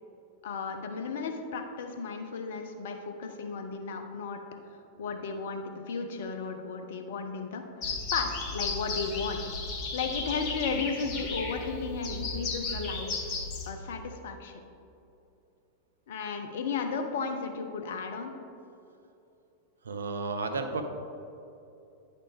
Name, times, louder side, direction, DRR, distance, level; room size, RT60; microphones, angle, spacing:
voice 1, 0.4-4.4 5.0-9.4 9.9-13.3 13.7-14.6 16.1-18.3, left 5 dB, 55° left, 5 dB, 0.7 m, -34 dB
sound 1, 7.8-13.7, left 4 dB, 40° left, 1.1 m, -34 dB
voice 2, 19.8-20.8, right 3 dB, 70° right, 6 dB, 0.6 m, -32 dB
9.6 x 4.2 x 3.5 m, 2.7 s
figure-of-eight pair, 90°, 0 cm